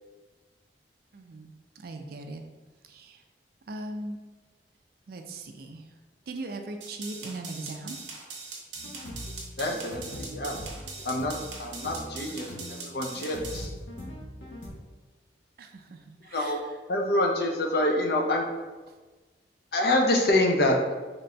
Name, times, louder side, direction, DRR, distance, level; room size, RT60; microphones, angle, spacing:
voice 1, 1.1-2.4 2.8-3.2 3.7-4.2 5.1-5.9 6.3-8.0 15.6-16.7, right 2 dB, 55° right, 5 dB, 0.4 m, -39 dB
sound 1, 6.8-13.7, right 4 dB, 80° right, 0.7 m, -41 dB
sound 2, 8.8-14.7, left 1 dB, 85° left, 0.8 m, -42 dB
voice 2, 9.6-10.6 11.0-13.7 16.3-16.6 16.9-18.4 19.7-20.8, left 1 dB, 55° left, 1 dB, 0.6 m, -26 dB
3.9 x 3.6 x 2.2 m, 1.3 s
head